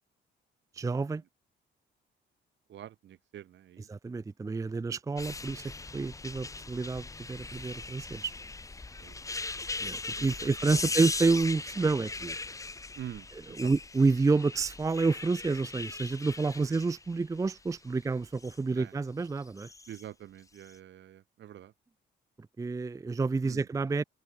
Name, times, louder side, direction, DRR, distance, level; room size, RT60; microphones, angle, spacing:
voice 1, 0.7-1.2 3.9-8.3 9.8-12.4 13.5-19.7 22.6-24.0, right 4 dB, 15° right, 0.5 m, -29 dB
voice 2, 2.7-3.9 9.0-9.2 10.2-10.5 10.8-10.9 12.9-13.3 13.6-13.7 16.7-16.8 18.8-18.9 19.9-21.7 23.4-23.7, right 11 dB, 65° right, 1.6 m, -45 dB
sound 1, 5.2-18.6 19.5-20.0 20.6-20.7, left 3 dB, 15° left, 0.8 m, -39 dB
cardioid pair, 90°, 20 cm